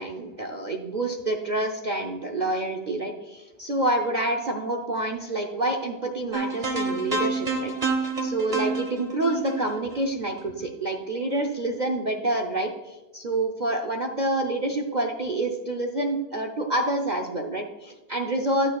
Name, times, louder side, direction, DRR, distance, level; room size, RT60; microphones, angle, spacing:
voice 1, 0.0-18.7, right 2 dB, 50° right, 3 dB, 0.5 m, -28 dB
sound 1, 6.3-10.6, right 3 dB, 30° right, 0.9 m, -29 dB
12.0 x 6.2 x 2.3 m, 1.2 s
omnidirectional pair, 1.7 m